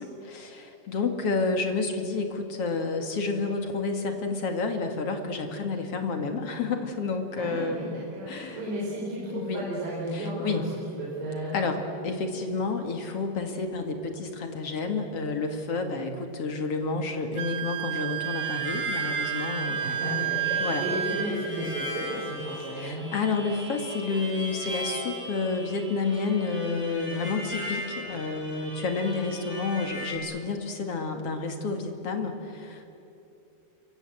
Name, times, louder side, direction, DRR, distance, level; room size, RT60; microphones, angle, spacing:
voice 1, 0.0-7.9 8.3-8.6 9.3-9.7 10.1-10.7 11.5-19.8 20.6-20.9 22.8-32.8, left 4 dB, 45° left, 5 dB, 2.3 m, -30 dB
voice 2, 7.4-10.7 11.0-11.8 19.8-23.1, equal, 55° right, -6 dB, 6.9 m, -33 dB
Wind instrument woodwind instrument, 17.3-21.3, right 10 dB, 80° right, 4.1 m, -31 dB
Harmonica, 18.2-30.2, equal, 5° right, 6.9 m, -38 dB
27.5 x 23.5 x 7.9 m, 2.9 s
omnidirectional pair, 4.7 m